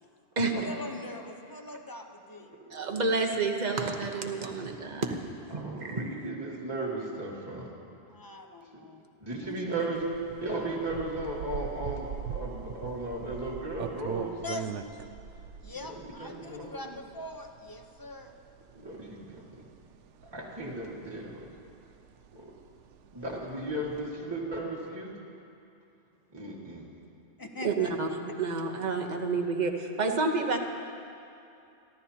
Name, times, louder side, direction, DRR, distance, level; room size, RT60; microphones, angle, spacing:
voice 1, 0.4-2.6 8.1-9.0 9.4-9.7 14.4-14.9 15.6-18.3 23.1-23.5 27.4-27.9, left 2 dB, 20° left, 4 dB, 0.7 m, -42 dB
voice 2, 2.7-5.2 5.5-6.2 27.6-30.6, right 3 dB, 40° right, 2 dB, 1.1 m, -29 dB
voice 3, 5.5-7.7 8.7-8.8 9.2-10.0 10.4-14.4 16.2-16.9 18.7-19.4 20.3-21.5 22.3-22.5 23.1-25.1 26.3-26.9, right 2 dB, 20° right, -6 dB, 2.1 m, -36 dB
sound 1, 9.9-24.1, right 8 dB, 85° right, 0.9 m, -42 dB
28.5 x 12.0 x 2.9 m, 2.7 s
omnidirectional pair, 1.2 m